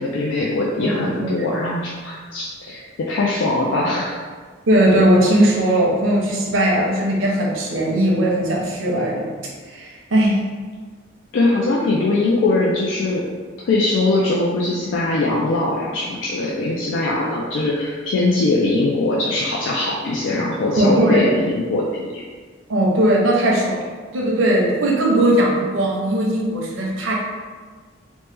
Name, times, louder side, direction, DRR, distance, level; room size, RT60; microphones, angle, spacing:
voice 1, 0.0-4.2 11.3-13.2 13.7-22.2, left 2 dB, 70° left, -4 dB, 0.3 m, -21 dB
voice 2, 0.8-1.5 4.7-9.3 9.7-10.4 20.8-21.3 22.7-23.8 24.1-27.1, right 1 dB, 80° right, -2 dB, 0.6 m, -18 dB
3.0 x 2.1 x 3.3 m, 1.5 s
head